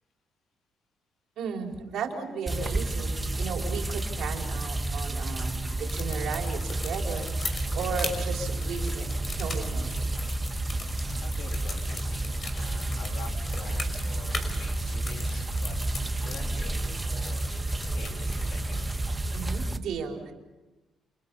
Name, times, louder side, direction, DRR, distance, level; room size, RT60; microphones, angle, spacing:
voice 1, 1.4-9.1 9.4-10.0 19.3-20.3, right 5 dB, 75° right, 2 dB, 4.4 m, -35 dB
sound 1, 2.5-19.8, right 2 dB, 15° right, 1.5 m, -31 dB
sound 2, 5.9-19.1, left 3 dB, 45° left, 5.8 m, -40 dB
voice 2, 11.2-15.8 16.2-18.9, left 6 dB, 80° left, 3 dB, 3.3 m, -47 dB
29.5 x 29.0 x 5.6 m, 1.1 s
cardioid pair, 90°, 0 cm